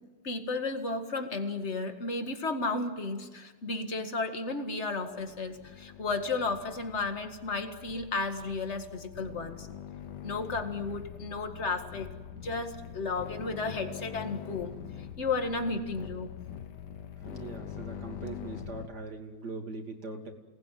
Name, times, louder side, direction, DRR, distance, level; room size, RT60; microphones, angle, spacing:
voice 1, 0.2-9.7 10.2-12.1 12.3-14.7 15.0-16.3, left 3 dB, 40° left, 6 dB, 2.2 m, -33 dB
sound 1, 5.0-18.9, left 9 dB, 85° left, 1.7 m, -44 dB
voice 2, 17.3-20.3, right 3 dB, 70° right, 3 dB, 3.3 m, -41 dB
28.5 x 19.5 x 9.3 m, 1.3 s
omnidirectional pair, 1.8 m